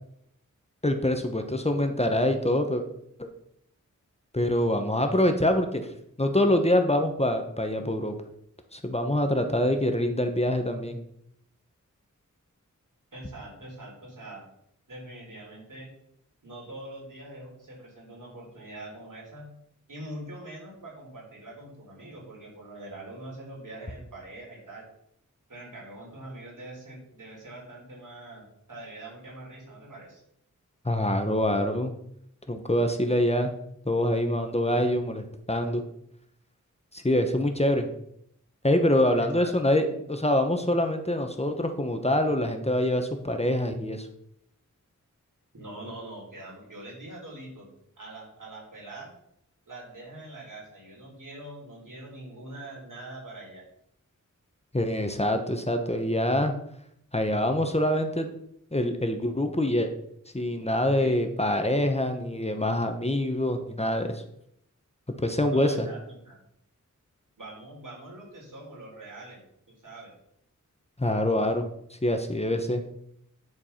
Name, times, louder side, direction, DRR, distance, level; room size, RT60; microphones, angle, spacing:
voice 1, 0.8-2.8 3.2-3.3 4.3-5.9 6.2-8.1 8.7-11.0 30.8-31.9 32.5-33.5 33.9-35.8 36.9-37.9 38.6-44.1 54.7-56.5 57.1-58.3 58.7-59.9 60.3-64.2 65.2-65.9 71.0-71.7 72.0-72.8, left 1 dB, 20° left, 6 dB, 1.0 m, -25 dB
voice 2, 13.1-14.4 14.9-15.9 16.4-19.5 19.9-24.8 25.5-30.2 39.2-39.5 45.5-47.7 48.0-49.1 49.7-53.6 61.0-61.5 65.5-66.4 67.4-69.4 69.8-70.1, right 1 dB, 80° right, -3 dB, 4.0 m, -43 dB
9.7 x 4.8 x 5.7 m, 0.73 s
wide cardioid pair, 75°, 31 cm